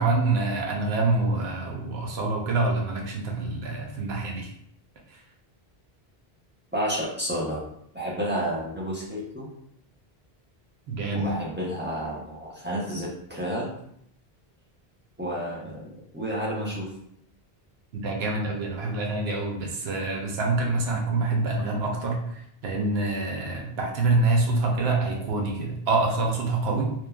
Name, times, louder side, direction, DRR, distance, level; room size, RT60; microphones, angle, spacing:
voice 1, 0.0-4.5 10.9-11.3 17.9-22.2 22.6-26.9, right 3 dB, 85° right, 0 dB, 0.9 m, -26 dB
voice 2, 6.7-7.6 7.9-9.5 11.1-13.7 15.2-16.9, equal, 20° right, -6 dB, 0.3 m, -30 dB
3.0 x 2.1 x 2.3 m, 0.72 s
omnidirectional pair, 1.0 m